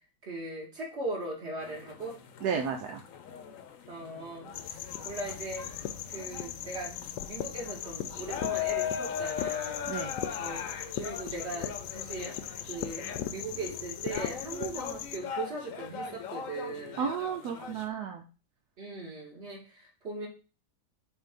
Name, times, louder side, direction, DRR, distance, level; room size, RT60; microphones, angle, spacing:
voice 1, 0.2-2.2 3.9-5.7 6.1-6.9 7.3-10.0 10.4-10.6 10.9-12.4 12.7-17.1 18.8-20.3, right 2 dB, 40° right, -2 dB, 2.2 m, -39 dB
sound 1, 1.6-17.9, left 8 dB, 60° left, 1.0 m, -39 dB
voice 2, 2.4-3.0 9.9-10.1 17.0-18.2, right 6 dB, 75° right, 3 dB, 1.2 m, -32 dB
sound 2, 4.5-15.2, left 10 dB, 85° left, 1.2 m, -39 dB
7.4 x 2.8 x 5.2 m, 0.34 s
omnidirectional pair, 1.8 m